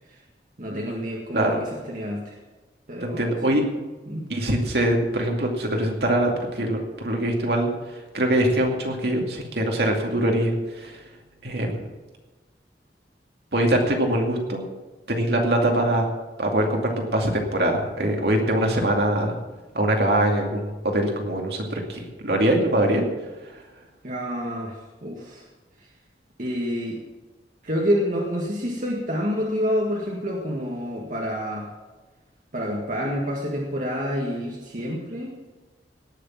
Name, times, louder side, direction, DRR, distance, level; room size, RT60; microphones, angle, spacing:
voice 1, 0.6-2.4 2.9-3.6 4.1-4.3 24.0-25.5 25.8-25.9 26.4-27.0 27.6-31.7 32.5-35.3, equal, 50° right, -2 dB, 1.8 m, -28 dB
voice 2, 3.0-3.6 4.3-7.7 8.1-11.0 11.4-11.8 13.5-14.6 15.1-16.1 16.4-19.4 19.7-23.1, right 1 dB, 65° right, 1 dB, 2.4 m, -23 dB
18.0 x 6.7 x 7.3 m, 1.2 s
head